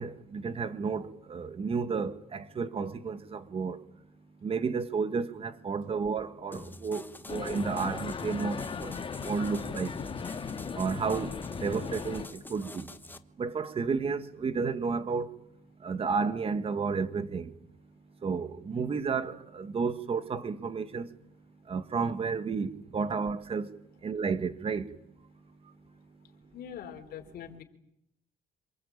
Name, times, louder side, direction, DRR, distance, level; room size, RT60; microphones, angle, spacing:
voice 1, 0.0-3.8 4.4-9.9 10.8-11.3 11.6-12.9 13.4-15.3 15.8-17.5 18.2-21.1 21.7-23.7 24.0-24.9, right 5 dB, 35° right, 1.8 m, -32 dB
sound 1, 6.5-13.2, left 2 dB, 10° left, 1.2 m, -47 dB
sound 2, 7.3-12.3, left 6 dB, 30° left, 1.9 m, -37 dB
voice 2, 26.5-27.6, left 9 dB, 65° left, 4.1 m, -43 dB
27.0 x 20.5 x 8.8 m
cardioid pair, 110°, 17 cm